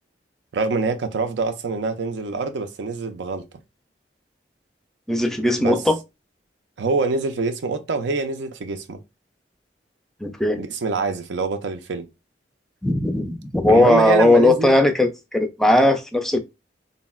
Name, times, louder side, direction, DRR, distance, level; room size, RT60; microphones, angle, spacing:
voice 1, 0.5-3.4 5.6-5.8 6.8-9.0 10.6-12.1 13.7-14.7, right 4 dB, 75° right, 0.4 m, -25 dB
voice 2, 5.1-6.0 10.2-10.6 12.8-16.4, left 1 dB, ahead, 0.3 m, -18 dB
3.8 x 2.0 x 2.2 m
head